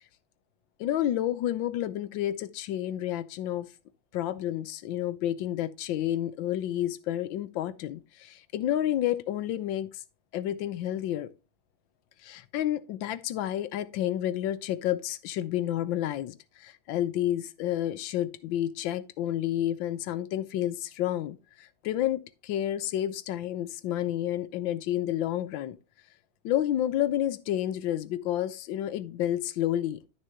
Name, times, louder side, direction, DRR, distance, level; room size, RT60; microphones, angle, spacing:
voice 1, 0.8-3.7 4.1-10.0 10.3-11.3 12.2-25.8 26.4-30.1, left 12 dB, 75° left, 1.3 m, -30 dB
12.0 x 6.6 x 2.8 m
omnidirectional pair, 2.2 m